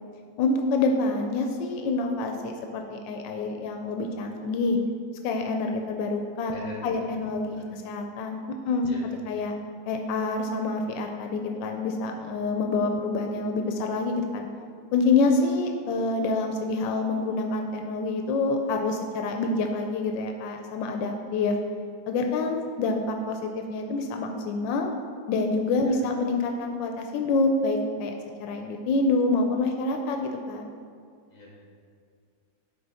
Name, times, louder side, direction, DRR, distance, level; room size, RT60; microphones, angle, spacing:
voice 1, 0.4-4.8 5.2-6.6 6.8-8.4 8.7-8.9 9.3-9.5 9.9-14.5 14.9-21.6 22.1-24.9 25.3-28.1 28.4-30.7, left 3 dB, 90° left, 3 dB, 1.3 m, -27 dB
voice 2, 6.5-7.1 7.5-7.7 8.8-9.0 25.8-26.0 31.3-31.7, left 3 dB, 45° left, -4 dB, 2.1 m, -42 dB
10.5 x 3.7 x 4.1 m, 2.2 s
omnidirectional pair, 2.0 m